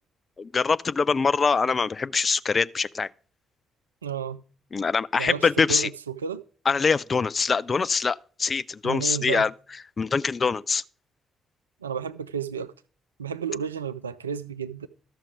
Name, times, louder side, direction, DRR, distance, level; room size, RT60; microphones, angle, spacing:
voice 1, 0.4-3.1 4.7-5.9 6.7-9.5 10.0-10.8, left 5 dB, 35° left, 0.4 m, -24 dB
voice 2, 4.0-4.4 5.2-6.4 8.8-9.5 11.8-12.7 13.2-14.9, right 7 dB, 85° right, 0.3 m, -32 dB
12.5 x 5.9 x 4.8 m
figure-of-eight pair, 45°, 0 cm